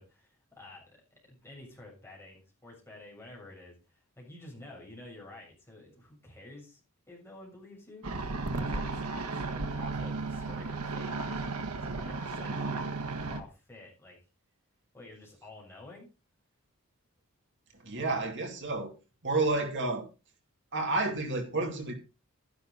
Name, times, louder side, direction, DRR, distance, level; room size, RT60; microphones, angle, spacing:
voice 1, 0.0-3.7 4.2-6.8 7.1-11.4 11.8-14.2 14.9-16.1, left 2 dB, 10° left, -3 dB, 7.4 m, -50 dB
sound 1, 8.0-13.4, right 3 dB, 90° right, 1.4 m, -34 dB
voice 2, 17.8-18.9 19.2-20.1 20.7-22.0, right 3 dB, 55° right, 3 dB, 3.0 m, -30 dB
12.0 x 11.5 x 4.1 m, 0.30 s
head